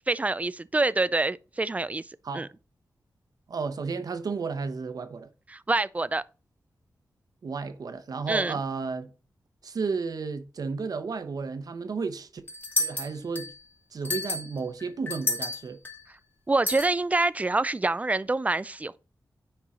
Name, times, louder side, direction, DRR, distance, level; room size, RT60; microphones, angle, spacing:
voice 1, 0.1-2.0 2.3-2.5 5.5-6.2 8.3-8.6 16.5-19.0, right 2 dB, 20° right, 0.4 m, -26 dB
voice 2, 3.5-5.3 7.4-9.1 9.6-12.4 12.8-13.5 13.9-15.8, right 4 dB, 65° right, 1.0 m, -32 dB
sound 1, 12.5-13.6 14.0-16.0 16.7-16.9, left 2 dB, 25° left, 2.4 m, -31 dB
10.0 x 4.6 x 3.7 m
wide cardioid pair, 90°, 7 cm